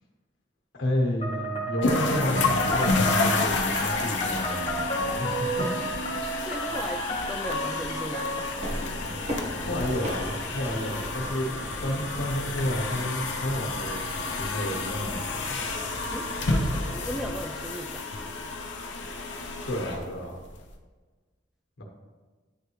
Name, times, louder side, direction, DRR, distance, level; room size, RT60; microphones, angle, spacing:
voice 1, 0.8-5.7 9.6-11.5 11.8-15.6 16.6-16.7 19.7-20.4 21.8-21.9, equal, 85° left, 0 dB, 1.3 m, -31 dB
sound 1, 1.2-8.6, right 1 dB, 30° left, 1.2 m, -32 dB
sound 2, 1.8-20.7, left 3 dB, 70° left, 0.7 m, -30 dB
voice 2, 6.4-8.5 16.1-18.3, equal, ahead, 3 dB, 0.3 m, -37 dB
sound 3, 8.6-17.4, equal, 35° right, 1.2 m, -39 dB
9.9 x 3.3 x 3.1 m, 1.4 s
head